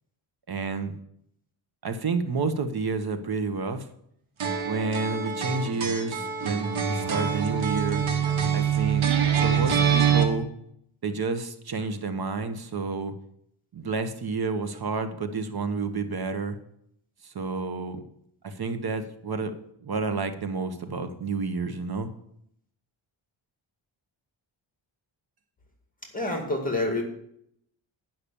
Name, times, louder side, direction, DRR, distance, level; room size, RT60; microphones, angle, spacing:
voice 1, 0.5-1.0 1.8-3.9 4.6-8.0 8.5-9.1 9.4-10.5 11.0-13.1 13.7-16.6 17.2-18.0 18.4-19.5 19.8-22.1, right 4 dB, 50° right, 9 dB, 1.0 m, -30 dB
sound 1, 4.4-10.2, right 7 dB, 80° right, 1.4 m, -25 dB
voice 2, 26.1-27.0, left 2 dB, 15° left, 2 dB, 2.2 m, -27 dB
10.0 x 5.9 x 6.9 m, 0.73 s
wide cardioid pair, 105°, 49 cm